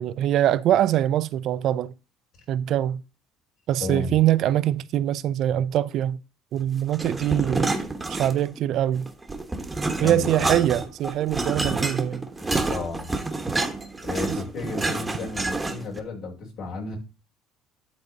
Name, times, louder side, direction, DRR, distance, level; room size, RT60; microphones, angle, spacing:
voice 1, 0.0-1.9 2.5-3.0 3.7-6.2 6.5-7.8 8.1-9.1 10.0-12.3 14.3-14.4, right 12 dB, 60° right, 0.4 m, -23 dB
voice 2, 3.8-4.1 10.0-10.6 12.7-13.1 14.0-17.0, left 3 dB, 60° left, 5.1 m, -33 dB
sound 1, 6.9-8.6 9.0-16.0, right 2 dB, 10° right, 1.2 m, -28 dB
12.0 x 4.1 x 3.9 m
cardioid pair, 125°, 0 cm